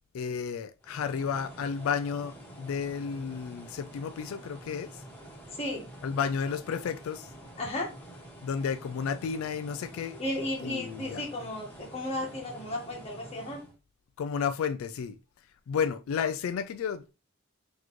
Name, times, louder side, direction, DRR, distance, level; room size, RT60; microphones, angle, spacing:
voice 1, 0.1-5.0 6.0-7.3 8.4-10.2 10.6-11.2 14.2-15.2 15.7-17.1, left 6 dB, 90° left, 0.3 m, -32 dB
sound 1, 0.8-13.7, right 1 dB, 10° left, 1.5 m, -48 dB
voice 2, 5.6-5.9 7.6-7.9 10.2-13.6, left 1 dB, 30° left, 1.5 m, -34 dB
4.0 x 3.0 x 3.1 m
head